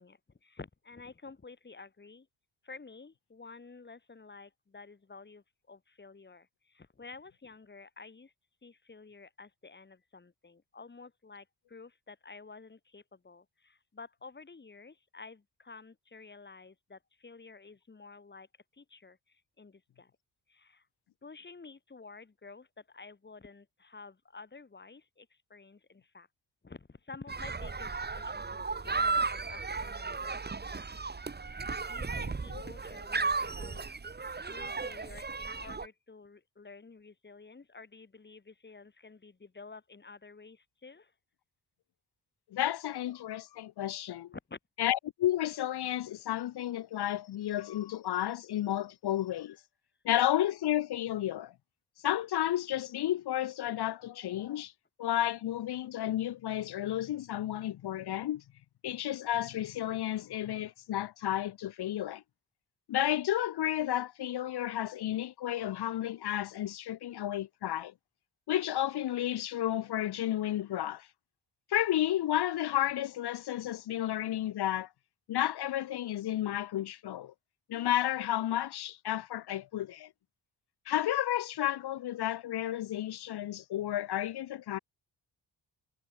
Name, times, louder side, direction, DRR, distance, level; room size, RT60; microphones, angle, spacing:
voice 1, 0.0-2.3 2.6-8.3 8.6-18.5 18.7-20.1 20.5-20.9 21.2-26.3 26.6-30.4 30.7-31.1 31.4-31.6 31.9-33.8 34.5-41.1 44.3-44.6, left 4 dB, 25° left, 4.2 m, -51 dB
sound 1, 27.3-35.9, right 4 dB, 25° right, 2.0 m, -35 dB
voice 2, 42.5-44.3 44.8-49.6 50.0-51.5 52.0-54.7 55.0-58.4 58.8-62.2 62.9-67.9 68.5-71.1 71.7-74.9 75.3-77.3 77.7-80.1 80.9-84.8, left 12 dB, 70° left, 0.9 m, -32 dB
cardioid pair, 120°, 41 cm